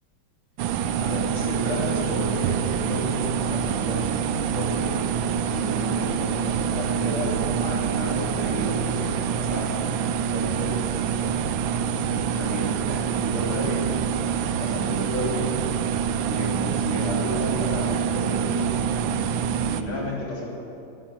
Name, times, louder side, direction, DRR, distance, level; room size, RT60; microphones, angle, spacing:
sound 1, 0.6-19.8, right 7 dB, 75° right, 1.3 m, -26 dB
voice 1, 1.0-4.9 5.4-7.3 7.6-9.7 10.2-10.9 12.1-13.8 14.6-15.5 16.2-18.7 19.7-20.5, equal, 75° left, -5 dB, 3.9 m, -32 dB
13.5 x 8.8 x 7.9 m, 2.7 s
omnidirectional pair, 2.3 m